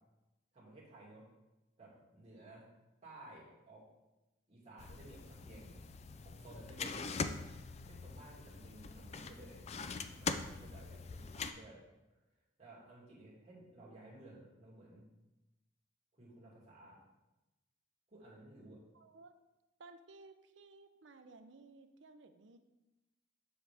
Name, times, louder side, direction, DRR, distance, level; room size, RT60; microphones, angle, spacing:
voice 1, 0.5-1.2 1.8-2.7 3.0-3.8 4.5-5.8 6.2-7.3 7.8-9.7 10.1-11.8 12.6-15.1 16.1-17.0 18.1-18.8, right 2 dB, 35° right, -6 dB, 2.5 m, -56 dB
sound 1, 4.8-11.5, left 4 dB, 35° left, 0.3 m, -43 dB
voice 2, 18.9-19.4 19.8-22.6, right 3 dB, 70° right, 8 dB, 0.6 m, -57 dB
7.3 x 6.3 x 3.4 m, 1.0 s
head